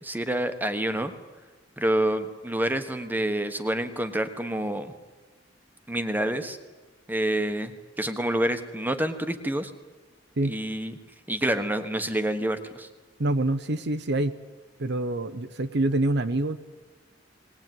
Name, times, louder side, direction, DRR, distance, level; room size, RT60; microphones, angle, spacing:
voice 1, 0.0-1.1 1.8-4.9 5.9-6.6 7.1-9.7 10.4-11.0 11.3-12.9, right 1 dB, 10° right, 9 dB, 1.3 m, -28 dB
voice 2, 13.2-14.3 14.8-16.6, right 2 dB, 60° right, 10 dB, 0.9 m, -26 dB
20.0 x 19.0 x 9.3 m, 1.3 s
head